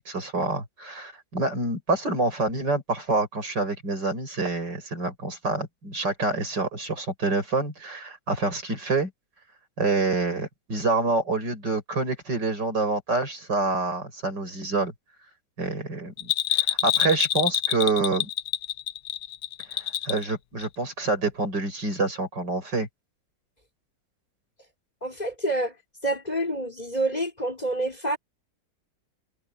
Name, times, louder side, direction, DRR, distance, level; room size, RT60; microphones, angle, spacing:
voice 1, 0.0-9.1 9.8-14.9 15.6-18.3 19.7-22.9, right 3 dB, 70° right, 7.1 m, -27 dB
Bell, 16.2-20.3 20.6-20.7, left 12 dB, 65° left, 1.1 m, -26 dB
voice 2, 25.0-25.7 26.0-28.2, right 1 dB, 20° left, 4.9 m, -27 dB
omnidirectional pair, 2.0 m